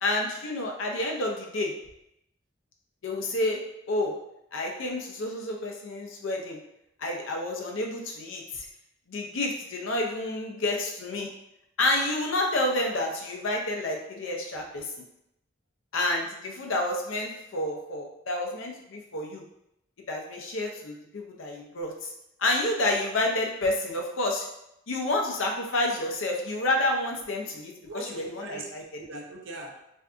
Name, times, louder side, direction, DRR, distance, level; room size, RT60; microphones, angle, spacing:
voice 1, 0.0-1.7 3.0-3.6 3.9-4.1 4.5-6.6 7.0-8.7 9.1-11.3 11.8-14.9 15.9-19.4 20.1-22.1 22.4-24.5 24.9-28.8, left 2 dB, 75° left, 1 dB, 0.6 m, -29 dB
voice 2, 27.8-28.7 29.0-29.8, right 3 dB, 70° right, 1 dB, 0.6 m, -40 dB
3.4 x 2.6 x 2.4 m, 0.81 s
head